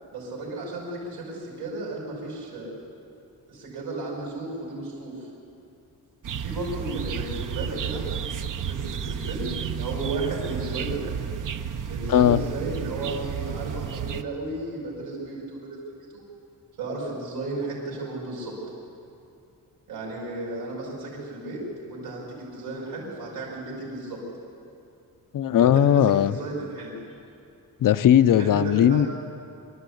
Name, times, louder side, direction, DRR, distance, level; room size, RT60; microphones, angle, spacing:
voice 1, 0.1-2.7 3.5-5.3 6.4-8.0 8.7-11.2 11.9-16.2 16.8-18.5 19.9-24.2 25.6-26.9 28.3-29.1, right 2 dB, 70° right, -4 dB, 5.5 m, -34 dB
sound 1, 6.2-14.2, right 8 dB, 55° right, 0.8 m, -32 dB
voice 2, 12.1-12.4 25.3-26.3 27.8-29.1, left 10 dB, 55° left, 13 dB, 0.6 m, -18 dB
25.0 x 13.0 x 8.4 m, 2.6 s
wide cardioid pair, 165°, 39 cm